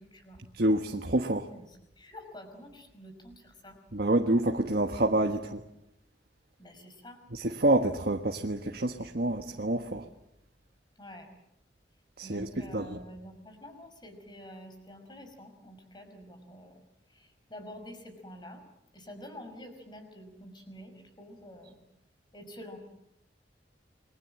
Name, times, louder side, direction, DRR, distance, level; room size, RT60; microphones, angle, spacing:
voice 1, 0.0-0.4 1.5-3.8 6.6-7.2 11.0-11.3 12.2-16.7 17.1-18.6 18.9-21.8 22.3-22.8, left 1 dB, 25° left, 5.4 m, -48 dB
voice 2, 0.6-1.5 3.9-5.6 7.3-10.0 12.2-13.0, right 1 dB, 60° right, 1.4 m, -27 dB
29.0 x 22.5 x 7.7 m
head